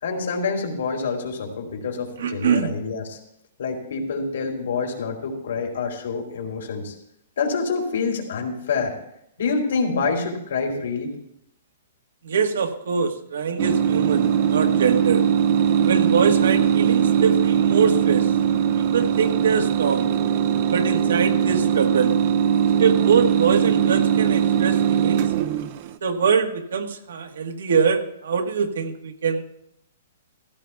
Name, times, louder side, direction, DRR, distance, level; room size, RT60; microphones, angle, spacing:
voice 1, 0.0-3.2 3.6-6.9 7.4-8.9 9.4-11.1, left 4 dB, 65° left, 1 dB, 2.9 m, -27 dB
voice 2, 2.2-2.7 12.2-15.2 15.8-18.3 18.7-20.1 20.7-22.2 22.8-25.3 26.0-29.4, right 6 dB, 75° right, 5 dB, 1.4 m, -23 dB
sound 1, 13.6-25.9, right 8 dB, 30° right, 0.4 m, -20 dB
16.0 x 15.5 x 2.3 m, 0.76 s
hypercardioid pair, 175°, 0 cm